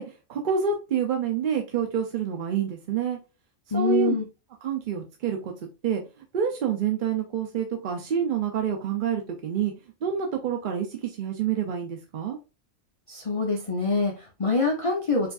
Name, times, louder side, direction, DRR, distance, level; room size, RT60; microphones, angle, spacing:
voice 1, 0.0-3.2 3.7-4.2 4.6-5.5 5.8-9.7 10.0-12.4, right 8 dB, 55° right, 3 dB, 0.5 m, -27 dB
voice 2, 3.7-4.2 13.1-15.3, left 3 dB, 50° left, 1 dB, 0.4 m, -25 dB
4.6 x 2.5 x 2.3 m, 0.29 s
omnidirectional pair, 1.3 m